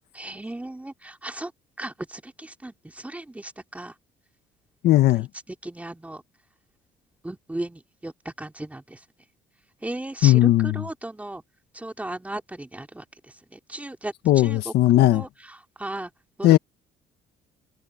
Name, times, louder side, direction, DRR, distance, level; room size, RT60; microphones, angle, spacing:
voice 1, 0.1-1.5 1.8-3.9 5.6-6.2 7.2-9.0 9.8-11.4 11.7-13.0 13.5-14.7 15.1-16.1 16.4-16.5, right 1 dB, 10° right, 3.0 m, -36 dB
voice 2, 4.8-5.3 10.2-10.8 14.3-15.2 16.4-16.6, left 15 dB, 75° left, 1.7 m, -17 dB
cardioid pair, 110°, 17 cm